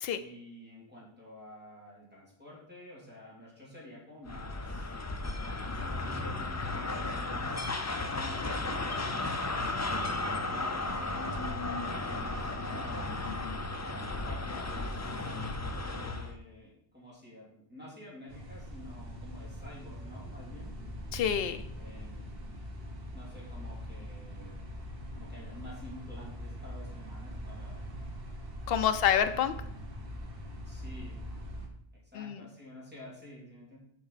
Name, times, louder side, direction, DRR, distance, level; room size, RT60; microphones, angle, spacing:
voice 1, 0.1-4.9 5.6-7.7 8.0-9.4 10.1-13.1 14.2-15.4 15.7-20.7 21.7-22.3 23.1-24.6 25.1-27.8 30.6-31.2 32.1-33.8, left 1 dB, 10° right, -6 dB, 2.7 m, -50 dB
sound 1, 4.3-16.3, left 2 dB, 30° left, 0.3 m, -34 dB
voice 2, 13.3-13.6 21.1-21.6 28.7-29.5 32.1-32.4, left 9 dB, 65° left, 9 dB, 0.8 m, -28 dB
sound 2, 18.3-31.7, equal, 65° right, 1.3 m, -42 dB
7.6 x 5.4 x 4.0 m, 0.69 s
omnidirectional pair, 1.1 m